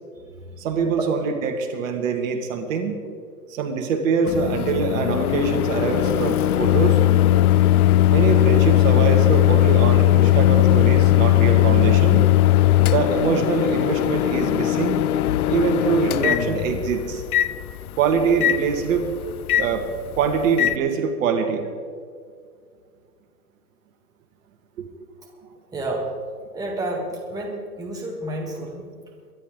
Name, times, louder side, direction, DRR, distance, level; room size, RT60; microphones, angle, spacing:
voice 1, 0.6-3.0 3.5-7.0 8.1-12.3 12.9-15.0 15.5-17.2 18.0-19.1 19.6-19.9 20.1-21.7 24.8-24.9, right 6 dB, 50° right, 5 dB, 2.0 m, -24 dB
Microwave oven, 4.3-20.8, left 13 dB, 60° left, 0.7 m, -19 dB
voice 2, 25.7-26.1 26.5-28.8, right 1 dB, 5° right, -1 dB, 1.8 m, -30 dB
23.5 x 11.0 x 3.8 m, 2.1 s
hypercardioid pair, 135°, 50 cm